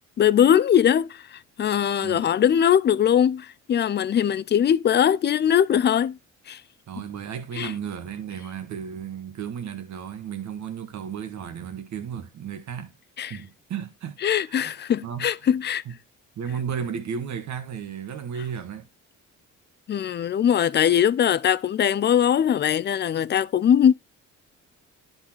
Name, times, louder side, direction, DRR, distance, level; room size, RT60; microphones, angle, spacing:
voice 1, 0.2-6.2 6.5-6.6 7.6-7.7 13.2-13.4 14.2-15.8 19.9-23.9, left 9 dB, 35° left, 0.4 m, -21 dB
voice 2, 6.9-12.9 13.2-14.2 14.5-15.3 15.9-16.0 16.4-18.9, right 7 dB, 70° right, 1.6 m, -34 dB
10.5 x 4.2 x 4.3 m
cardioid pair, 90°, 30 cm